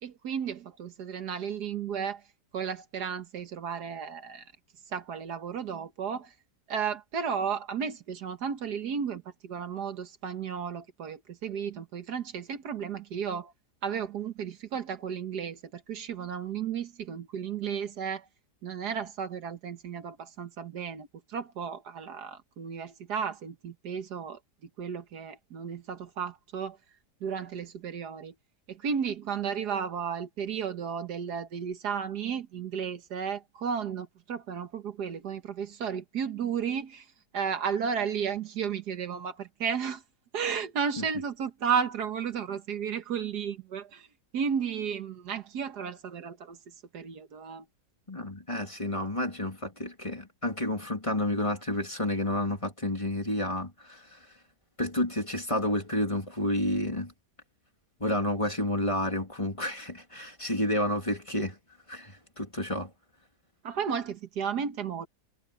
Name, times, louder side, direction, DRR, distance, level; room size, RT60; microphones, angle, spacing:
voice 1, 0.0-2.2 2.5-4.5 4.9-6.3 6.7-13.5 13.8-18.3 18.6-24.4 24.8-26.8 27.2-28.3 28.7-37.1 37.3-40.0 40.3-44.1 44.3-47.7 63.6-65.1, right 7 dB, 75° right, 1.8 m, -33 dB
voice 2, 48.1-54.3 54.8-57.1 58.0-61.6 61.9-62.9, left 1 dB, 20° left, 2.7 m, -30 dB
omnidirectional pair, 1.7 m